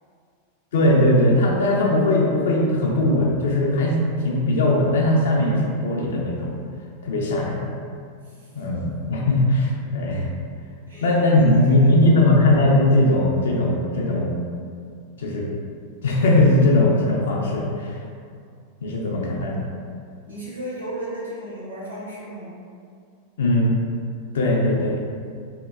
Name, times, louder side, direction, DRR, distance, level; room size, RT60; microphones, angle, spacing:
voice 1, 0.7-6.5 7.0-7.6 8.5-10.3 11.0-14.4 15.2-15.5 16.0-18.0 18.8-19.7 23.4-23.8 24.3-25.0, left 1 dB, 60° left, -1 dB, 0.4 m, -19 dB
voice 2, 8.2-8.7 10.9-11.9 12.3-12.5 20.3-22.6, right 1 dB, 85° right, -9 dB, 1.1 m, -35 dB
2.8 x 2.2 x 2.3 m, 2.3 s
figure-of-eight pair, 90°, 0 cm